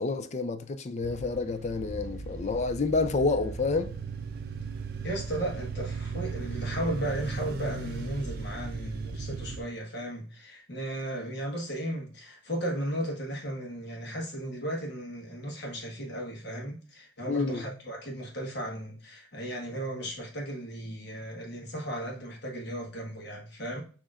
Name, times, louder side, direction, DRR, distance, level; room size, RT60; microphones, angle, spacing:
voice 1, 0.0-3.9 17.3-17.6, left 3 dB, 35° left, 0.4 m, -29 dB
sound 1, 1.0-9.6, right 4 dB, 50° right, 0.5 m, -37 dB
voice 2, 5.0-23.8, right 1 dB, 55° left, 1.3 m, -35 dB
6.2 x 2.9 x 2.4 m
head